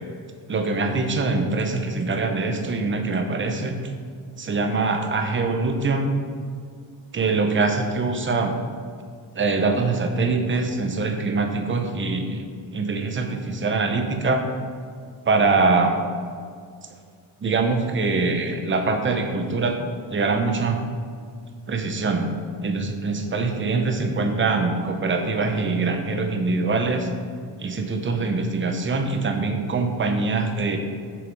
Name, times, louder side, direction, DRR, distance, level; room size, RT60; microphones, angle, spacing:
voice 1, 0.5-3.8 4.4-6.1 7.1-8.5 9.4-12.4 12.7-14.4 15.3-16.0 17.4-19.8 20.1-20.8 21.7-22.3 22.6-27.1 27.6-30.8, right 3 dB, 25° right, 5 dB, 0.8 m, -23 dB
7.8 x 6.7 x 5.4 m, 2.1 s
wide cardioid pair, 165°, 46 cm